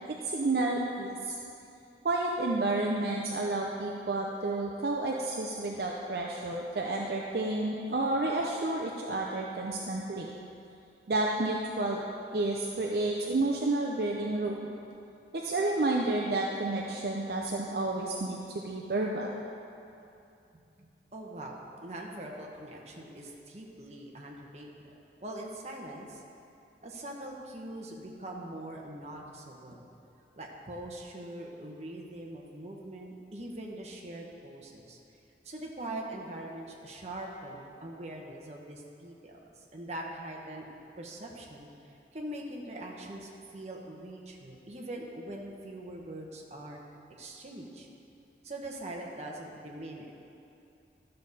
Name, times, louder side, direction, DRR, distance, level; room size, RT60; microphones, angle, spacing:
voice 1, 0.1-1.3 2.0-10.3 11.1-12.0 12.3-14.6 15.3-19.4, right 2 dB, 55° right, -1 dB, 0.6 m, -30 dB
voice 2, 20.8-24.9 25.2-26.2 26.8-29.9 30.4-35.0 35.4-40.7 41.0-41.7 42.1-46.8 47.2-47.9 48.4-50.1, right 1 dB, 40° right, -1 dB, 1.0 m, -42 dB
12.5 x 6.6 x 4.1 m, 2.7 s
head